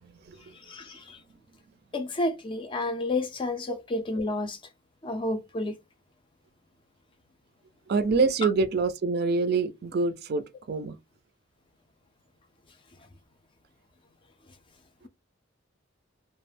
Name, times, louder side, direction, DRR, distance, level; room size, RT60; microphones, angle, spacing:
voice 1, 0.0-0.5 7.9-11.0, right 4 dB, 55° right, 0.4 m, -26 dB
voice 2, 0.7-1.2 1.9-4.6 5.0-5.7, left 2 dB, 25° left, 0.4 m, -30 dB
2.3 x 2.1 x 3.2 m
head